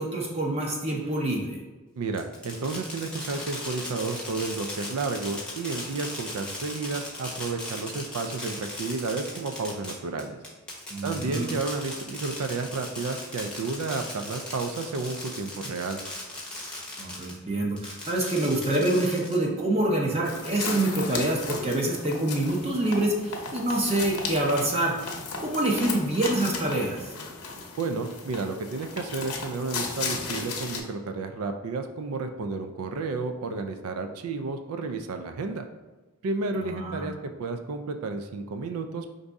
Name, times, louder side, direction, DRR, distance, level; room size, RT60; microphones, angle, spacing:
voice 1, 0.0-1.6 10.9-11.5 17.0-24.9 25.4-27.0 36.6-37.0, right 1 dB, 30° right, -1 dB, 0.5 m, -26 dB
voice 2, 2.0-10.4 11.0-16.0 27.8-35.6 36.2-39.2, right 3 dB, 80° right, 6 dB, 0.4 m, -32 dB
Fireworks, 2.1-17.4 17.8-19.6, left 2 dB, 5° left, 0.7 m, -38 dB
sound 1, 20.2-30.8, left 4 dB, 85° left, 0.8 m, -35 dB
5.1 x 2.6 x 3.4 m, 1.2 s
head